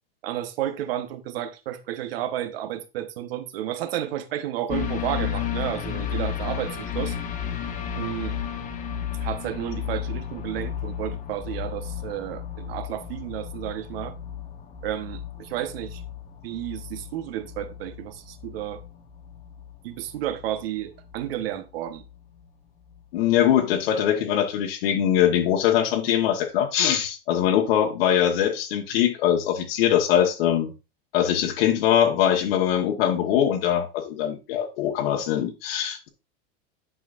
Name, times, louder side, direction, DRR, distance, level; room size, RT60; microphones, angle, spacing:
voice 1, 0.2-7.2 7.9-8.4 9.2-14.1 14.8-16.0 16.4-18.8 19.8-22.0, right 12 dB, 75° right, 1.1 m, -32 dB
sound 1, 4.7-22.5 22.9-23.0, left 9 dB, 25° left, 1.0 m, -34 dB
voice 2, 23.1-30.7 31.1-36.1, left 10 dB, 75° left, 1.3 m, -22 dB
10.0 x 5.8 x 2.5 m
supercardioid pair, 150°, 30 cm